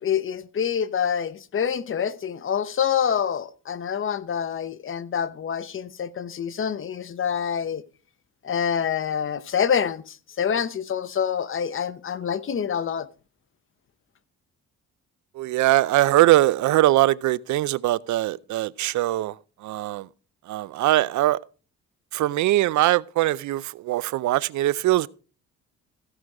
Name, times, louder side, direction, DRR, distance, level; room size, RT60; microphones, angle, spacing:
voice 1, 0.0-7.8 8.4-13.1, left 8 dB, 45° left, 0.9 m, -26 dB
voice 2, 15.4-19.4 19.6-20.1 20.5-21.4 22.1-25.1, right 15 dB, 70° right, 0.5 m, -21 dB
15.0 x 6.3 x 4.7 m
cardioid pair, 90°, 30 cm